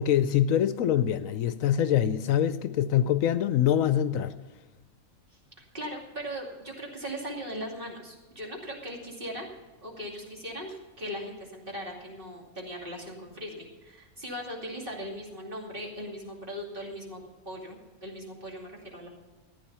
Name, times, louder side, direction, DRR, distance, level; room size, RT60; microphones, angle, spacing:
voice 1, 0.0-4.3, left 10 dB, 75° left, 1.0 m, -24 dB
voice 2, 5.7-9.5 9.8-19.1, equal, 40° right, 2.8 m, -39 dB
15.0 x 9.8 x 5.6 m
omnidirectional pair, 1.5 m